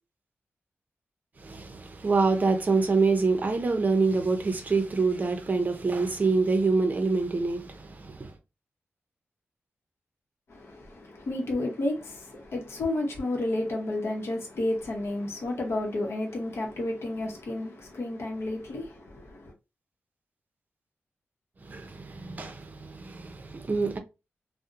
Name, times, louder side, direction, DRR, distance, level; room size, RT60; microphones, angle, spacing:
voice 1, 1.4-8.3 21.6-24.0, right 3 dB, 40° right, 0.5 m, -26 dB
voice 2, 10.5-19.5, left 2 dB, 65° left, 0.8 m, -31 dB
2.7 x 2.1 x 2.4 m
wide cardioid pair, 105°, 5 cm